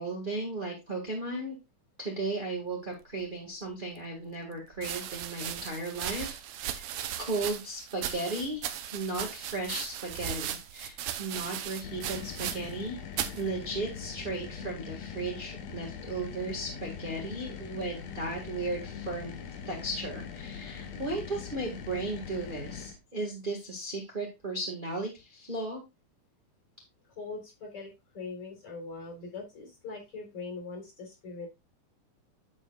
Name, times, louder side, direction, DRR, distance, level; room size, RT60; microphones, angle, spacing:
voice 1, 0.0-1.5 2.0-6.9 7.2-8.7 8.9-13.0 13.4-19.3 19.7-25.8, right 2 dB, 20° right, -1 dB, 1.4 m, -35 dB
sound 1, 3.7-3.8 4.7-12.9 13.1-13.4 14.2-14.6, right 11 dB, 70° right, 1.8 m, -37 dB
sound 2, 11.8-23.0, left 7 dB, 65° left, 2.2 m, -42 dB
voice 2, 27.1-31.5, left 3 dB, 50° left, 2 dB, 4.6 m, -41 dB
9.7 x 7.5 x 2.4 m, 0.23 s
omnidirectional pair, 3.5 m